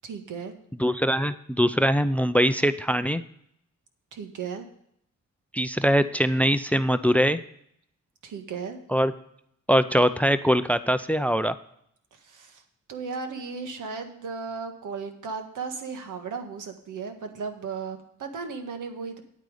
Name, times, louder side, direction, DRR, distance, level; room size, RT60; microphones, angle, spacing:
voice 1, 0.0-0.5 4.1-4.6 8.2-8.8 12.1-12.6 12.9-19.2, right 5 dB, 75° right, 6 dB, 1.7 m, -35 dB
voice 2, 0.8-3.2 5.5-7.4 8.9-9.1 9.7-11.5, equal, 5° left, 13 dB, 0.5 m, -22 dB
9.5 x 8.9 x 4.9 m, 0.69 s
cardioid pair, 100°, 31 cm